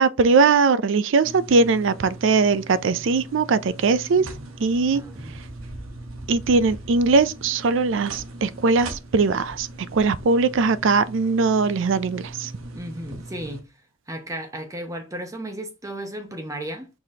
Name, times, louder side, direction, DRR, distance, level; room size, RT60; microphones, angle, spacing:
voice 1, 0.0-4.3 4.6-5.0 6.3-12.5, right 4 dB, 60° right, 0.4 m, -20 dB
sound 1, 1.2-13.6, right 2 dB, 85° right, 1.0 m, -40 dB
voice 2, 4.2-4.5 4.9-5.4 12.7-13.7 14.1-16.9, right 1 dB, 15° right, 0.7 m, -34 dB
4.9 x 3.9 x 2.8 m
head